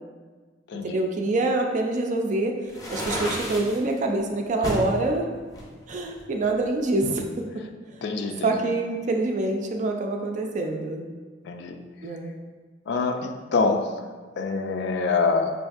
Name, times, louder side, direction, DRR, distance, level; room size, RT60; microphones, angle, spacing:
voice 1, 0.8-5.3 5.9-7.2 8.4-11.1 12.0-12.3, right 2 dB, 40° right, 3 dB, 0.4 m, -26 dB
sound 1, 2.7-3.8 4.6-4.9 5.5-6.6, equal, 20° left, 0.6 m, -31 dB
voice 2, 8.0-8.5 11.5-11.8 12.9-13.9 14.4-15.5, left 4 dB, 65° left, 5 dB, 0.3 m, -25 dB
5.2 x 2.5 x 2.4 m, 1.4 s
head